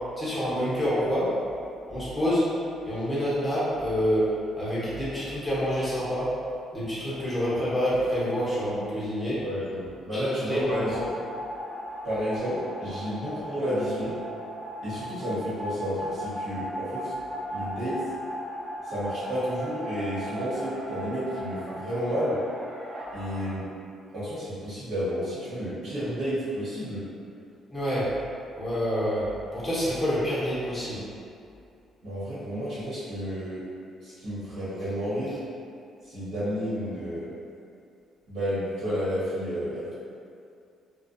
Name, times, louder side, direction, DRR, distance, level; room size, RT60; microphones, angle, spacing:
voice 1, 0.2-1.2 1.9-2.4 2.8-4.2 4.6-6.3 6.7-9.4 10.1-10.2 10.5-10.9 27.7-28.0 28.5-29.2 29.5-31.0, equal, 10° left, -10 dB, 1.1 m, -27 dB
voice 2, 9.4-11.1 12.0-14.2 14.8-17.1 17.5-18.0 18.8-22.4 23.1-23.6 24.1-27.0 32.0-33.6 34.0-35.4 36.0-37.3 38.3-39.9, equal, 65° right, -12 dB, 1.2 m, -31 dB
sound 1, 10.6-23.5, equal, 40° right, 0.4 m, -37 dB
2.3 x 2.3 x 2.6 m, 2.4 s
cardioid pair, 90°, 0 cm